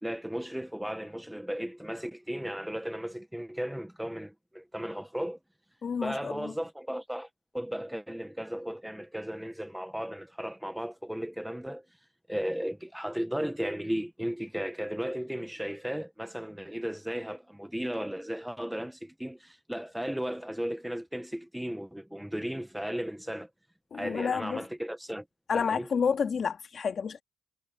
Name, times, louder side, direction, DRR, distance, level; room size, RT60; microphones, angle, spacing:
voice 1, 0.0-5.4 6.0-7.3 7.5-11.8 12.3-23.5 23.9-25.2 25.5-25.9, equal, 5° right, 1.2 m, -35 dB
voice 2, 5.8-6.5 23.9-24.6 25.5-27.2, left 6 dB, 50° left, 2.1 m, -30 dB
cardioid pair, 90°, 0 cm